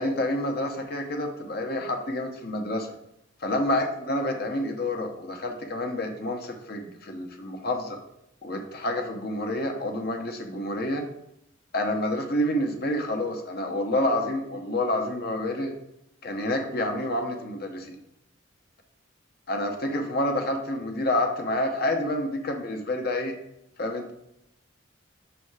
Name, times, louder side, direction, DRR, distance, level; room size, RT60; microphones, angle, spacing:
voice 1, 0.0-2.9 3.4-8.0 8.4-11.0 11.7-15.7 16.2-18.0 19.5-23.4 23.8-24.1, left 1 dB, 50° left, 4 dB, 0.9 m, -28 dB
6.4 x 3.4 x 4.7 m, 0.80 s
head